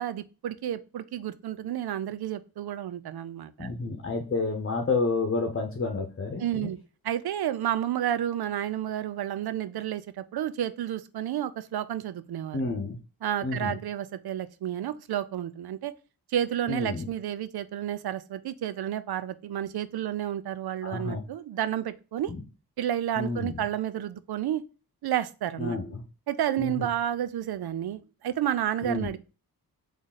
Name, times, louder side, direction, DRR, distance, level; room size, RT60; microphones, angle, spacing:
voice 1, 0.0-3.7 6.4-6.8 7.0-12.6 13.2-15.9 16.3-22.3 22.8-24.6 25.0-25.8 26.3-29.2, right 11 dB, 80° right, 0.5 m, -31 dB
voice 2, 3.6-6.7 12.5-13.0 13.4-13.8 16.7-17.1 20.8-21.2 22.3-22.4 23.2-23.6 25.6-26.0 26.6-26.9 28.8-29.1, left 3 dB, 35° left, 0.9 m, -30 dB
3.7 x 3.4 x 4.0 m
cardioid pair, 65°, 37 cm